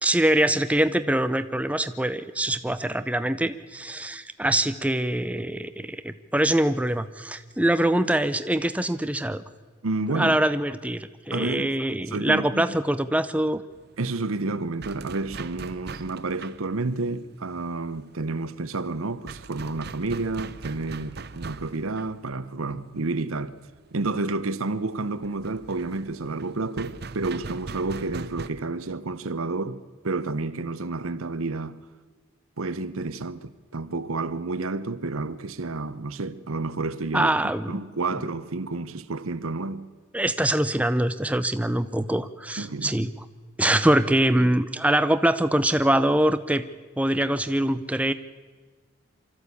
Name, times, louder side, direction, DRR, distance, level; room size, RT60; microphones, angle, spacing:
voice 1, 0.0-9.4 10.1-13.6 37.1-37.9 40.1-43.1 43.6-46.6 47.0-48.1, right 1 dB, 5° right, 0.6 m, -24 dB
voice 2, 9.8-10.4 11.3-11.7 12.1-12.6 14.0-23.6 23.9-31.8 32.6-37.3 37.7-39.9 42.6-43.0, right 3 dB, 85° right, 0.9 m, -30 dB
sound 1, 13.7-28.5, right 4 dB, 50° right, 0.7 m, -42 dB
24.0 x 14.0 x 8.4 m
head